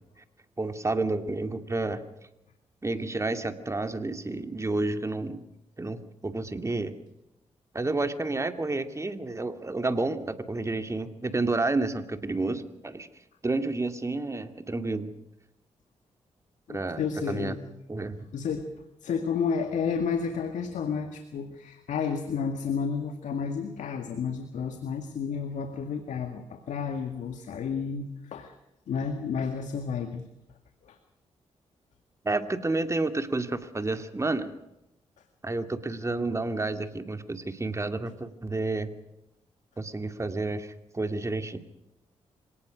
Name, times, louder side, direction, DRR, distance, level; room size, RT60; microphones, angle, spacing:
voice 1, 0.6-2.0 2.8-5.5 5.8-6.9 7.7-13.1 13.4-15.1 16.7-17.0 17.3-17.5 17.9-18.2 32.2-34.5 35.4-38.9 39.8-41.6, right 2 dB, 25° right, 8 dB, 2.3 m, -30 dB
voice 2, 16.7-17.6 18.3-18.7 19.0-28.5 28.9-30.3 30.8-31.0, left 6 dB, 85° left, 6 dB, 2.0 m, -31 dB
26.0 x 18.0 x 6.3 m, 0.88 s
cardioid pair, 70°, 12 cm